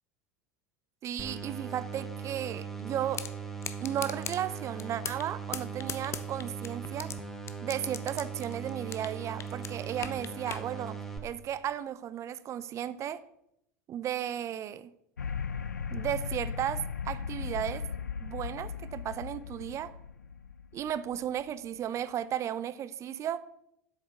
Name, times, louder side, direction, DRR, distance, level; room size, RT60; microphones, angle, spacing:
voice 1, 1.0-3.2 3.8-7.1 7.6-13.2 13.9-14.9 15.9-17.8 18.2-19.9 20.7-23.5, right 10 dB, 35° right, 16 dB, 0.6 m, -35 dB
sound 1, 1.2-11.2, right 6 dB, 5° left, 1.6 m, -39 dB
sound 2, 3.1-3.3 3.6-4.4 4.8-5.3 5.5-7.1 7.5-9.2 9.4-10.6, left 8 dB, 30° left, 0.9 m, -37 dB
sound 3, 15.2-21.7, left 6 dB, 80° left, 0.5 m, -37 dB
8.1 x 7.2 x 6.7 m, 0.79 s
figure-of-eight pair, 75°, 9 cm